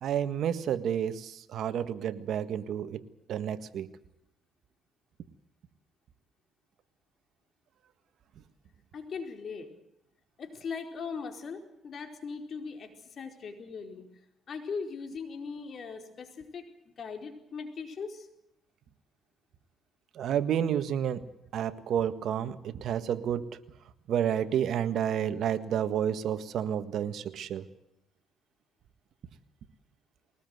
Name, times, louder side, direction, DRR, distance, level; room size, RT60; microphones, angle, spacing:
voice 1, 0.0-3.0 3.3-3.9 20.1-21.2 21.5-23.6 24.1-27.6, right 9 dB, 70° right, 11 dB, 1.6 m, -30 dB
voice 2, 8.9-9.7 10.4-14.0 14.5-16.7 17.0-18.3, left 5 dB, 55° left, 5 dB, 4.6 m, -39 dB
22.0 x 19.0 x 8.0 m, 0.82 s
cardioid pair, 90°, 0 cm